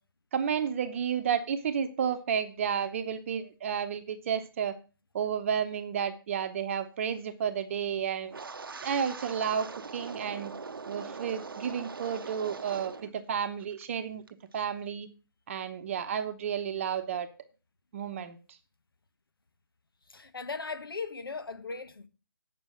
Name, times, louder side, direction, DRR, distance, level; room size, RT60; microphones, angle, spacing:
voice 1, 0.3-4.8 5.1-8.3 8.8-9.7 9.9-10.5 10.9-14.2 14.5-15.1 15.5-17.3 17.9-18.6, right 7 dB, 35° right, 0.9 m, -31 dB
Wind, 8.3-13.1 13.4-13.9 14.3-14.6, right 4 dB, 70° right, 0.8 m, -41 dB
voice 2, 20.1-22.1, left 4 dB, 75° left, 1.4 m, -38 dB
9.1 x 6.1 x 7.6 m
figure-of-eight pair, 145°, 12 cm